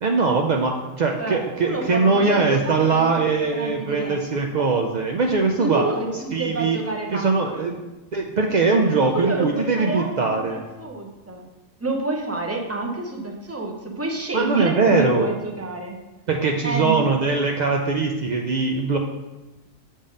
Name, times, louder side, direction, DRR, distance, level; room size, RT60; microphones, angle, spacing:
voice 1, 0.0-5.8 6.3-6.8 7.1-10.6 14.3-15.3 16.3-19.0, right 4 dB, 75° right, 2 dB, 0.4 m, -21 dB
voice 2, 1.2-4.2 5.6-7.6 9.0-11.5 11.8-16.0 16.6-17.1, right 2 dB, 15° right, 1 dB, 0.6 m, -28 dB
7.0 x 3.6 x 5.2 m, 1.1 s
omnidirectional pair, 1.4 m